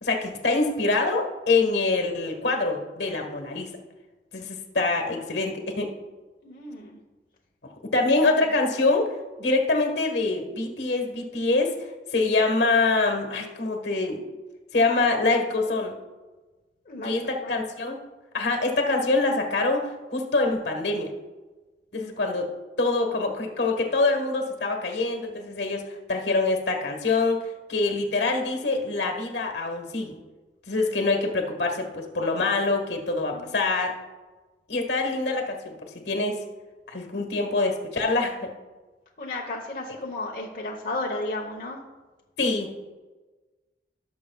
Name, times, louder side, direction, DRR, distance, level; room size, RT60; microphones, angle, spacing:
voice 1, 0.0-3.7 4.3-5.9 7.8-14.2 14.7-16.0 17.0-18.0 18.3-21.1 21.9-22.5 22.8-30.2 30.7-34.0 34.7-36.4 36.9-38.5 42.4-42.7, left 3 dB, 70° left, 4 dB, 1.5 m, -25 dB
voice 2, 6.4-7.0 8.2-8.3 8.8-8.9 16.9-17.6 33.3-33.5 39.2-41.8, left 2 dB, 50° left, -2 dB, 1.0 m, -34 dB
17.5 x 6.6 x 2.3 m, 1.2 s
head